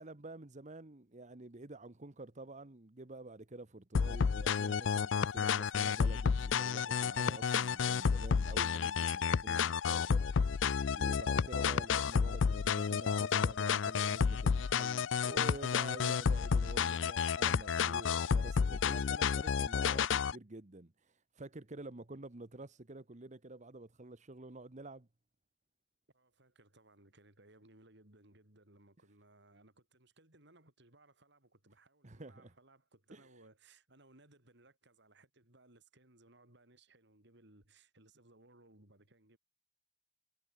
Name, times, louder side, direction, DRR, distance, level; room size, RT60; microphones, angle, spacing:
voice 1, 0.0-25.1 32.0-32.5 33.1-33.3, right 2 dB, 40° right, 1.2 m, -49 dB
sound 1, 3.9-20.3, left 6 dB, 70° left, 0.5 m, -31 dB
voice 2, 26.1-39.4, right 2 dB, 65° right, 6.4 m, -64 dB
head